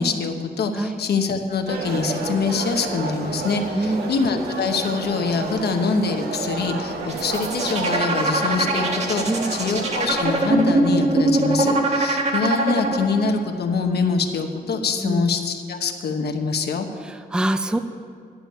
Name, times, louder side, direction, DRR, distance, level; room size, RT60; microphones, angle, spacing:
voice 1, 0.0-9.2 9.5-16.9, left 4 dB, 75° left, 5 dB, 1.0 m, -24 dB
sound 1, 1.7-10.5, right 3 dB, 75° right, 1.4 m, -30 dB
voice 2, 3.7-4.1 9.3-9.6 15.0-15.3 17.0-17.8, right 1 dB, 5° right, 9 dB, 0.4 m, -25 dB
sound 2, 7.0-13.3, right 2 dB, 40° right, 1.4 m, -22 dB
11.0 x 7.1 x 9.2 m, 2.2 s
wide cardioid pair, 175°, 17 cm